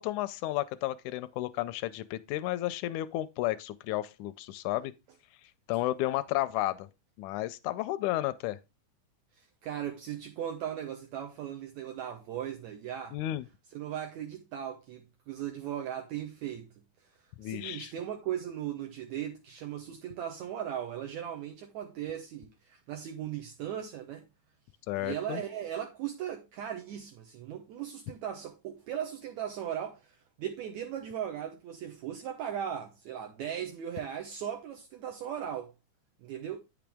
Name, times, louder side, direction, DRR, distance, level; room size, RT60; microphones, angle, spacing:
voice 1, 0.0-4.9 5.7-6.9 7.2-8.6 13.1-13.5 17.4-17.9 24.9-25.4, left 15 dB, 80° left, 1.8 m, -32 dB
voice 2, 9.4-13.2 13.7-16.7 17.4-24.2 25.0-35.7 36.2-36.6, right 10 dB, 70° right, 1.9 m, -38 dB
8.8 x 6.1 x 3.4 m
omnidirectional pair, 3.7 m